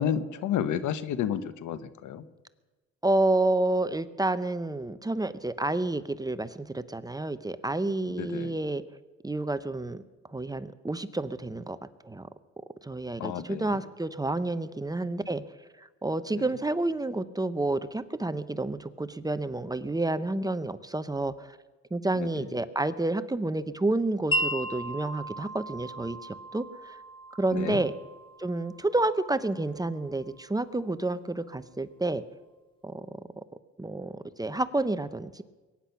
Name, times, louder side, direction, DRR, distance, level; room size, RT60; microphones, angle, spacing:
voice 1, 0.0-2.2 8.2-8.5 13.2-13.8 16.3-16.4 22.1-22.3 27.5-27.8, left 9 dB, 75° left, 13 dB, 1.1 m, -31 dB
voice 2, 3.0-8.8 9.2-10.0 10.3-11.8 12.0-12.3 12.8-15.4 15.8-21.6 21.9-27.0 27.4-27.9 28.4-32.2 32.8-33.1 33.8-35.4, right 2 dB, 10° right, 12 dB, 0.7 m, -29 dB
Wind chime, 24.3-30.4, right 1 dB, 15° left, 1.5 m, -36 dB
22.5 x 10.0 x 5.8 m, 1.2 s
cardioid pair, 90°, 30 cm